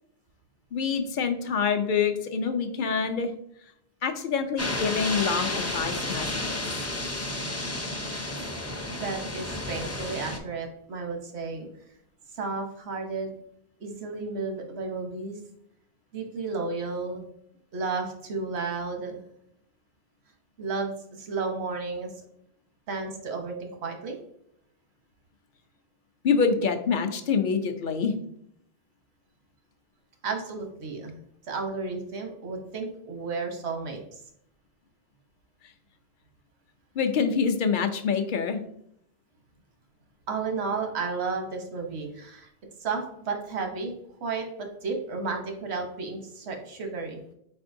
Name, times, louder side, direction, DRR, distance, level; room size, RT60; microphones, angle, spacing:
voice 1, 0.7-3.3 4.0-6.8 26.2-28.1 37.0-38.6, left 5 dB, 60° left, 7 dB, 0.6 m, -26 dB
sound 1, 4.6-10.4, left 2 dB, 20° left, 0.5 m, -32 dB
voice 2, 8.9-11.7 12.3-13.3 13.8-15.4 16.1-17.2 17.7-19.2 20.6-22.2 22.9-24.2 30.2-31.2 31.4-34.2 40.3-42.5 42.8-43.9 44.2-47.2, right 4 dB, 90° right, 3 dB, 1.1 m, -33 dB
4.5 x 4.2 x 2.6 m, 0.73 s
omnidirectional pair, 1.1 m